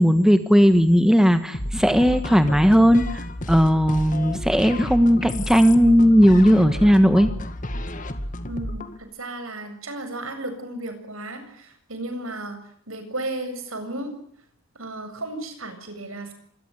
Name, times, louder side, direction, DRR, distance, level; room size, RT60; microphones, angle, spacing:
voice 1, 0.0-3.2 3.5-7.3, equal, 5° right, 9 dB, 1.5 m, -16 dB
sound 1, 1.5-9.0, left 1 dB, 35° left, 2.3 m, -31 dB
voice 2, 8.5-12.6 12.9-14.1 14.7-16.3, right 2 dB, 75° right, 8 dB, 7.7 m, -34 dB
26.0 x 22.5 x 9.3 m, 0.62 s
head